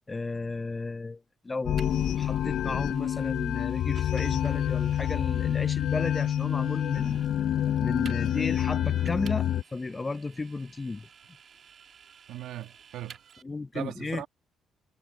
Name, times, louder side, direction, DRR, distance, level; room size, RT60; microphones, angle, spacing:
voice 1, 0.1-7.2 7.8-11.1 13.4-14.2, left 3 dB, 25° left, 0.6 m, -34 dB
sound 1, 1.6-9.6, left 10 dB, 70° left, 0.5 m, -27 dB
Vehicle, 1.8-13.4, right 7 dB, 55° right, 2.5 m, -53 dB
voice 2, 12.3-13.2 13.7-14.3, right 13 dB, 85° right, 1.9 m, -38 dB
cardioid pair, 90°, 0 cm